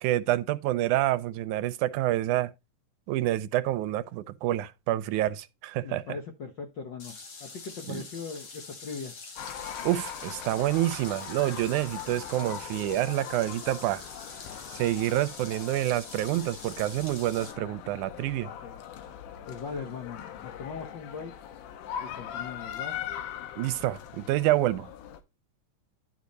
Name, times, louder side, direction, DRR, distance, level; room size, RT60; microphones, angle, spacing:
voice 1, 0.0-2.5 3.1-6.0 7.9-8.0 9.8-14.0 14.8-18.5 23.6-24.9, right 14 dB, 85° right, 2.1 m, -28 dB
voice 2, 5.8-9.1 18.6-18.8 19.5-21.3 22.0-23.0, left 5 dB, 65° left, 1.1 m, -40 dB
sound 1, 7.0-17.5, left 4 dB, 45° left, 2.6 m, -45 dB
sound 2, 9.4-25.2, left 9 dB, 85° left, 2.6 m, -41 dB
10.5 x 4.9 x 4.1 m
omnidirectional pair, 3.5 m